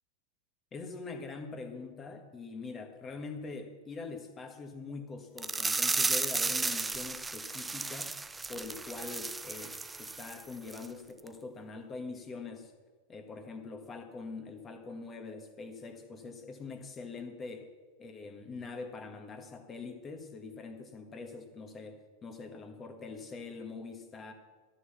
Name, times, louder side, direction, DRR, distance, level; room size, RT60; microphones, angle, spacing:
voice 1, 0.7-8.1 8.5-12.7 13.1-17.7 18.0-24.3, left 4 dB, 20° left, 6 dB, 1.6 m, -43 dB
sound 1, 5.4-10.4 10.7-10.9 11.3-11.4, right 3 dB, 10° right, 0.4 m, -33 dB
13.0 x 6.5 x 7.1 m, 1.3 s
figure-of-eight pair, 90°, 0 cm